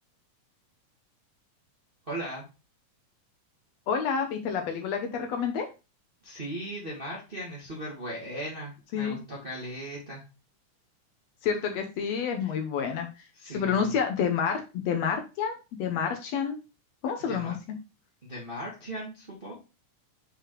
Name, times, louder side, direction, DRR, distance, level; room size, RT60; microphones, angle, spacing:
voice 1, 2.1-2.5 6.2-10.2 12.4-12.5 13.3-13.9 17.3-17.5 18.2-19.6, right 1 dB, 25° right, -5 dB, 1.4 m, -38 dB
voice 2, 3.9-5.7 8.9-9.2 11.4-13.3 13.5-16.6 17.0-17.5, left 7 dB, 75° left, 4 dB, 1.6 m, -29 dB
6.4 x 4.8 x 3.1 m, 0.29 s
omnidirectional pair, 3.7 m